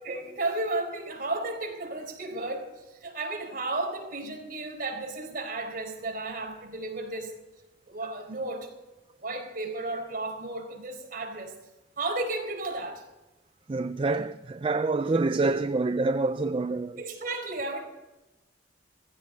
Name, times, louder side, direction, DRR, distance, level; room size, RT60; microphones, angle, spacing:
voice 1, 0.0-7.4 7.9-8.7 9.2-11.6 12.0-13.0 17.0-17.8, right 2 dB, 45° right, 4.5 m, -33 dB
voice 2, 13.7-17.0, right 3 dB, 30° right, 0.4 m, -27 dB
17.0 x 15.5 x 4.1 m
head